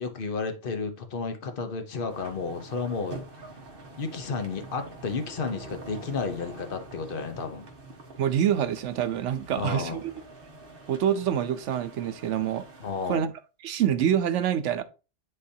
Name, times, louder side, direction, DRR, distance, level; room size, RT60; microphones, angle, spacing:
voice 1, 0.0-3.2 4.0-7.7 9.5-10.0 12.8-13.3, left 4 dB, 50° left, 1.1 m, -32 dB
sound 1, 2.1-13.2, right 2 dB, 50° right, 1.6 m, -46 dB
voice 2, 8.2-10.1 10.9-12.7 13.1-13.3 13.6-14.8, right 9 dB, 85° right, 1.0 m, -26 dB
9.9 x 4.0 x 2.8 m
omnidirectional pair, 1.2 m